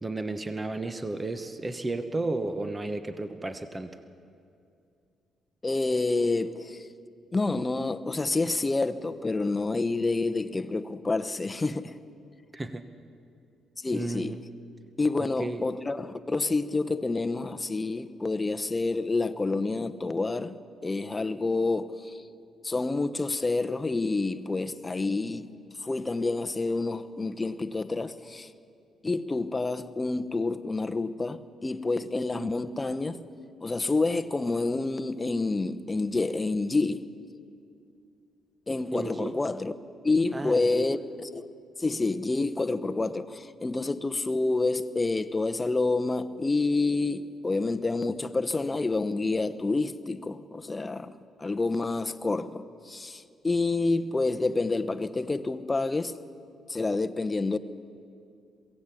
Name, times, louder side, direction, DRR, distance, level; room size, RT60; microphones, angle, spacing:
voice 1, 0.0-4.0 12.5-12.9 13.9-14.4 15.4-15.6 38.9-39.3 40.3-40.9, right 2 dB, 20° right, 1.1 m, -33 dB
voice 2, 5.6-6.9 7.3-12.0 13.8-14.4 15.0-22.2 22.6-25.5 25.8-28.5 29.0-33.3 33.6-37.1 38.7-39.7 40.0-41.5 41.8-51.1 51.4-56.1 56.7-57.6, left 3 dB, 20° left, 0.9 m, -28 dB
22.5 x 16.0 x 8.5 m
cardioid pair, 90°, 0 cm